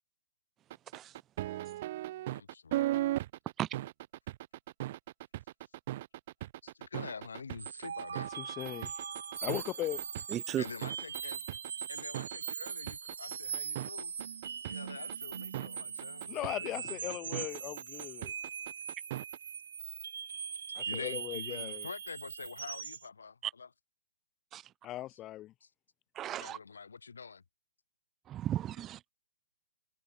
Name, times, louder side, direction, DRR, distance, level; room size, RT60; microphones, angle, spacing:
sound 1, 0.7-19.4, right 15 dB, 45° right, 4.4 m, -38 dB
voice 1, 2.3-3.1 6.6-8.4 10.6-11.4 11.9-14.3 14.6-17.4 20.9-23.7 25.6-25.7 26.3-27.4, left 5 dB, 85° left, 2.9 m, -46 dB
sound 2, 7.6-23.1, right 7 dB, 70° right, 1.3 m, -41 dB
voice 2, 8.4-8.9 9.4-10.0 16.3-18.3 20.8-21.9 24.8-25.5, left 14 dB, 25° left, 3.3 m, -38 dB
voice 3, 10.3-10.6 23.4-23.5 24.5-24.7 26.1-26.6 28.3-29.0, right 12 dB, 20° right, 4.1 m, -35 dB
hypercardioid pair, 135°, 0 cm